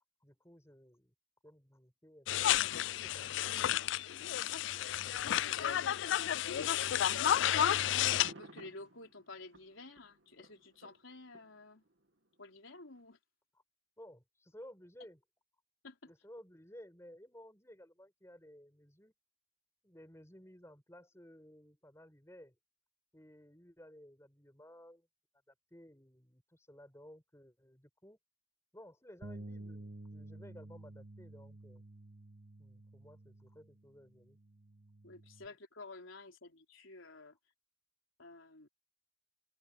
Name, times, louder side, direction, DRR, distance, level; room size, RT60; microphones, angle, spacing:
voice 1, 0.2-1.1 1.4-2.6 2.9-3.6 5.0-5.2 14.0-15.2 16.0-19.1 19.8-22.6 23.1-25.1 25.5-28.2 28.7-31.8 32.6-34.4, equal, 15° left, 6.6 m, -56 dB
sound 1, 2.3-8.3, left 11 dB, 70° left, 0.3 m, -31 dB
voice 2, 4.1-4.4 5.3-11.8 12.4-13.2 15.8-16.1 35.0-37.4 38.2-38.7, left 3 dB, 85° left, 4.0 m, -52 dB
sound 2, 8.1-12.3 13.0-13.1, right 1 dB, 70° right, 2.6 m, -55 dB
Bass guitar, 29.2-35.5, right 1 dB, 50° right, 1.5 m, -51 dB
head